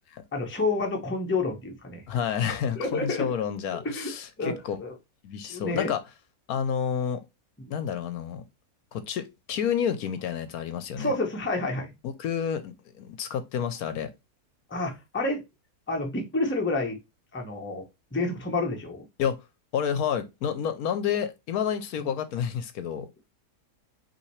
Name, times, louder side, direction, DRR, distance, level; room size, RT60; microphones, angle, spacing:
voice 1, 0.3-2.0 2.8-3.3 3.8-4.1 4.4-4.9 5.5-5.9 11.0-11.9 14.7-15.4 15.9-17.0 17.3-17.8 18.1-19.0 22.0-22.1, left 2 dB, 10° left, 0.7 m, -29 dB
voice 2, 2.1-4.8 5.2-6.0 6.5-7.2 7.7-8.4 8.9-11.1 12.0-14.1 19.2-19.4 19.7-23.1, left 8 dB, 75° left, 1.1 m, -29 dB
5.7 x 2.8 x 3.1 m
omnidirectional pair, 1.7 m